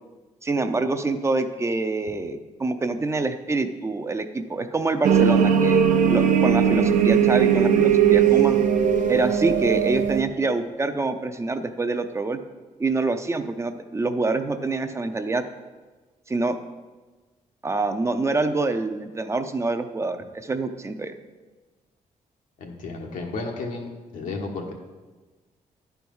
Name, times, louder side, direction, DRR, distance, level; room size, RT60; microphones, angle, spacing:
voice 1, 0.4-5.8 6.1-8.6 9.1-12.4 12.8-15.4 16.3-16.6 17.6-21.1, right 3 dB, 20° right, 8 dB, 0.5 m, -26 dB
sound 1, 5.0-10.2, right 8 dB, 80° right, 0.7 m, -19 dB
voice 2, 22.6-24.8, left 3 dB, 90° left, 1 dB, 1.4 m, -33 dB
10.5 x 4.6 x 5.4 m, 1.3 s
cardioid pair, 130°, 13 cm